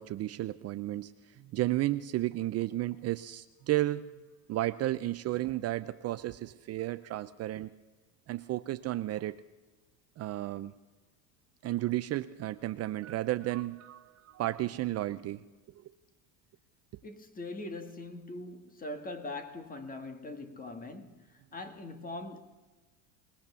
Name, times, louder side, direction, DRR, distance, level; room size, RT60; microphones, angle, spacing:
voice 1, 0.0-4.1 4.5-7.7 8.3-9.4 10.2-10.7 11.6-15.4 15.8-15.9 16.9-17.0, right 15 dB, 35° right, 0.6 m, -33 dB
voice 2, 17.0-22.4, left 2 dB, 20° left, 1.9 m, -42 dB
21.5 x 19.5 x 6.9 m
supercardioid pair, 130°, 41 cm